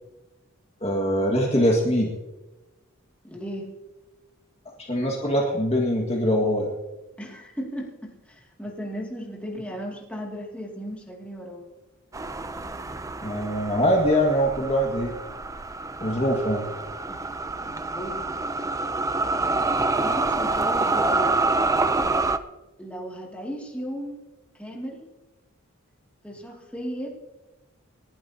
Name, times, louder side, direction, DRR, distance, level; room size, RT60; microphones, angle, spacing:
voice 1, 0.8-2.1 4.8-6.7 13.2-15.1 16.0-16.7, equal, 30° left, -1 dB, 1.8 m, -23 dB
voice 2, 3.2-3.8 7.2-11.6 17.1-17.3 17.6-18.4 20.0-21.4 22.8-24.2 24.5-25.1 26.2-27.2, equal, 5° left, -2 dB, 2.3 m, -36 dB
sound 1, 12.1-22.4, right 3 dB, 15° right, 0.5 m, -27 dB
28.5 x 11.5 x 2.8 m, 1.1 s
head